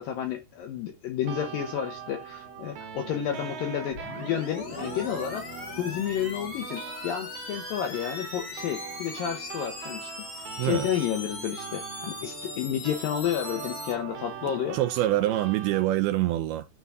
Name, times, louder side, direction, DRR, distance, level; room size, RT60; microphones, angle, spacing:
voice 1, 0.0-5.5 5.8-10.1 10.6-14.8, left 10 dB, 70° left, 2.3 m, -31 dB
sound 1, 1.2-15.8, right 7 dB, 60° right, 3.2 m, -41 dB
sound 2, 3.9-13.9, left 2 dB, 30° left, 2.0 m, -40 dB
voice 2, 10.6-10.9 14.7-16.7, right 14 dB, 85° right, 2.2 m, -25 dB
9.3 x 3.9 x 4.8 m
omnidirectional pair, 5.0 m